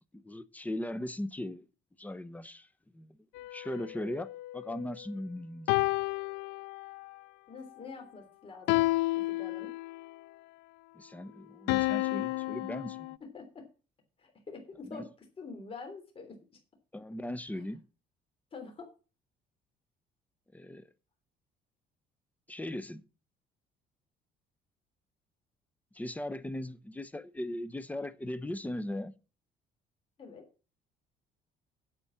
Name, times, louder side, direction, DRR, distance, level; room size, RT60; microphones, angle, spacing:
voice 1, 0.1-1.7 2.0-2.7 2.9-3.2 3.5-5.7 10.9-13.1 14.9-15.0 16.9-17.8 20.5-20.9 22.5-23.0 25.9-29.1, left 1 dB, 10° left, 0.8 m, -38 dB
sound 1, 3.4-5.1 5.7-7.1 8.7-10.1 11.7-13.2, left 21 dB, 90° left, 0.4 m, -31 dB
voice 2, 7.5-8.8 9.2-9.7 13.2-13.7 14.2-15.1 15.4-16.4 17.5-17.7 18.5-18.9 30.2-30.5, left 4 dB, 35° left, 3.4 m, -46 dB
8.5 x 8.0 x 7.2 m
cardioid pair, 110°, 17 cm